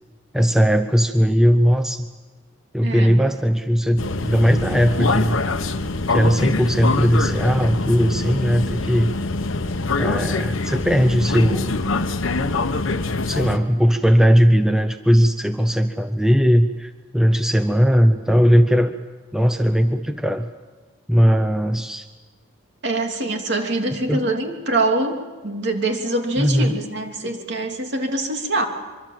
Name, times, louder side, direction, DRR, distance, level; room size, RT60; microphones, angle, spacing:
voice 1, 0.3-2.1 2.7-5.4 6.1-9.1 10.0-11.7 13.3-18.9 19.3-20.5 21.1-22.1 24.1-24.3 26.4-26.8, equal, 5° right, 7 dB, 0.7 m, -18 dB
voice 2, 2.8-3.1 22.8-28.7, right 2 dB, 55° right, 3 dB, 3.0 m, -24 dB
sound 1, 4.0-13.6, left 3 dB, 75° left, 1.2 m, -24 dB
24.5 x 24.0 x 7.5 m, 1.4 s
head